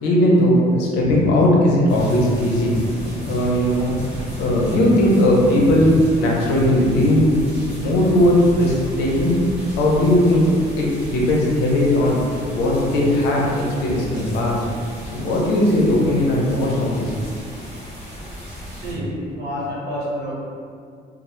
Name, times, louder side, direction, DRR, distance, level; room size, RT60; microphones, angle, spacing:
voice 1, 0.0-2.7 3.2-3.9 4.4-7.2 7.8-9.3 9.8-10.5 10.7-12.2 12.5-14.6 15.1-17.1, left 1 dB, 90° left, -3 dB, 0.6 m, -18 dB
sound 1, 1.9-18.9, equal, 5° right, 0.8 m, -34 dB
voice 2, 18.7-20.4, equal, 70° right, -8 dB, 1.0 m, -28 dB
2.1 x 2.0 x 2.9 m, 2.2 s
cardioid pair, 110°, 17 cm